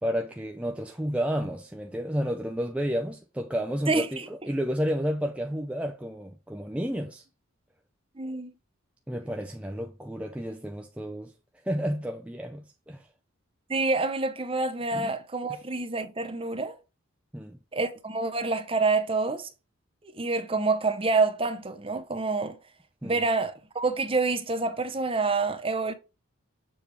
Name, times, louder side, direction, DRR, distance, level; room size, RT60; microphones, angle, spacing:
voice 1, 0.0-7.2 9.1-11.3 11.6-13.1 14.9-15.1 15.5-15.6 17.3-17.6 23.0-23.2, equal, 5° right, 0.4 m, -31 dB
voice 2, 3.9-4.5 8.2-8.5 13.7-16.7 17.7-19.5 20.1-22.6 23.0-25.9, right 3 dB, 25° right, 0.8 m, -27 dB
7.1 x 3.4 x 4.7 m
head